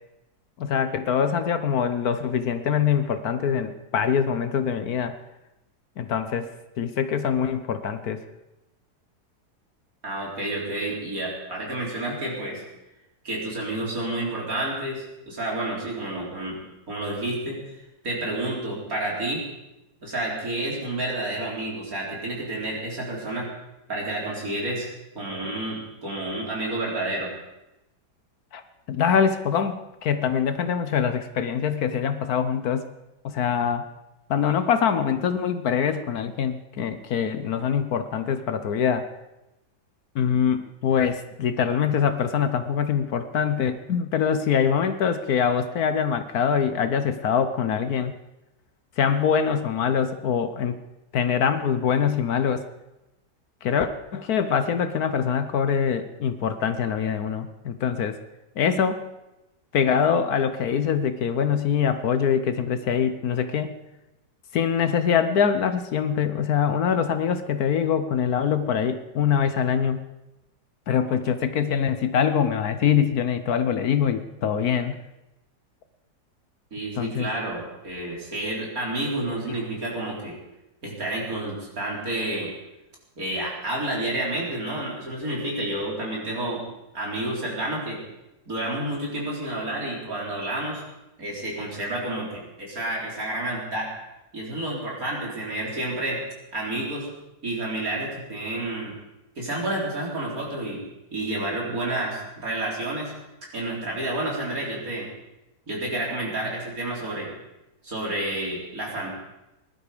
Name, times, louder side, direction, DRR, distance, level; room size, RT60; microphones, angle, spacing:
voice 1, 0.6-5.2 6.0-6.5 6.8-8.2 28.5-28.6 28.9-32.8 33.2-33.9 34.3-39.1 40.1-48.1 49.0-50.8 51.1-52.6 53.6-58.2 58.6-59.0 59.7-63.7 64.5-70.0 70.9-75.0 77.0-77.3, left 7 dB, 65° left, 10 dB, 1.3 m, -24 dB
voice 2, 10.0-12.6 13.2-16.6 16.9-17.6 18.0-19.4 20.0-23.5 23.9-24.9 25.1-27.3 76.7-80.4 80.8-82.5 83.2-86.6 86.9-88.0 88.5-90.8 91.2-93.9 94.3-96.2 96.5-97.1 97.4-98.9 99.4-100.8 101.1-103.1 103.5-105.1 105.7-107.3 107.8-109.1, right 1 dB, 55° right, -3 dB, 4.4 m, -30 dB
20.0 x 11.5 x 5.0 m, 0.95 s
omnidirectional pair, 1.8 m